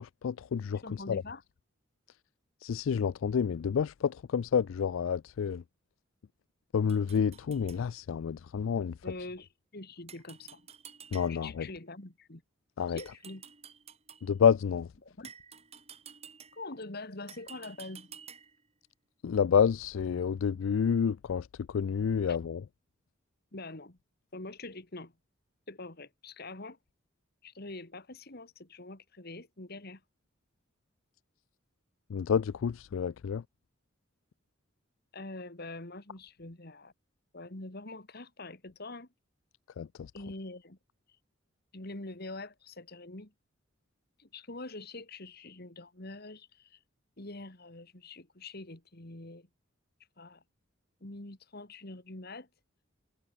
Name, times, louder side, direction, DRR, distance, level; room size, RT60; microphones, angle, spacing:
voice 1, 0.0-1.2 2.6-5.6 6.7-9.0 11.1-11.7 12.8-13.0 14.2-14.9 19.2-22.6 32.1-33.4 39.8-40.1, left 7 dB, 75° left, 0.4 m, -29 dB
voice 2, 0.8-1.4 9.0-10.6 11.3-12.4 12.9-13.4 15.0-15.3 16.5-18.1 23.5-24.0 24.3-25.1 25.7-26.8 27.4-30.0 35.1-36.9 37.3-39.1 40.1-40.8 41.7-43.3 44.2-46.8 47.2-49.5 50.2-50.4 51.0-52.5, left 2 dB, 50° left, 2.5 m, -44 dB
sound 1, 6.9-7.8 10.1-11.6 13.0-14.3 15.2-16.8 17.3-18.7, right 7 dB, 30° right, 4.2 m, -51 dB
head